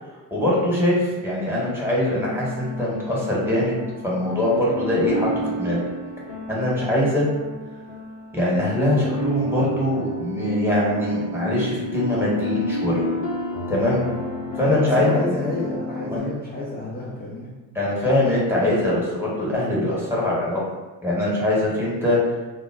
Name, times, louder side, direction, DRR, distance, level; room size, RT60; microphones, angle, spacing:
voice 1, 0.3-3.8 4.0-5.8 6.5-7.2 8.3-13.0 13.7-14.0 14.6-15.1 16.0-16.3 17.7-20.6 21.0-22.2, left 1 dB, 5° right, -6 dB, 1.1 m, -22 dB
sound 1, 2.1-16.2, left 1 dB, 70° left, 0.7 m, -30 dB
voice 2, 14.6-17.5, left 2 dB, 20° left, -4 dB, 0.4 m, -29 dB
2.1 x 2.0 x 3.5 m, 1.2 s
hypercardioid pair, 60°, 49 cm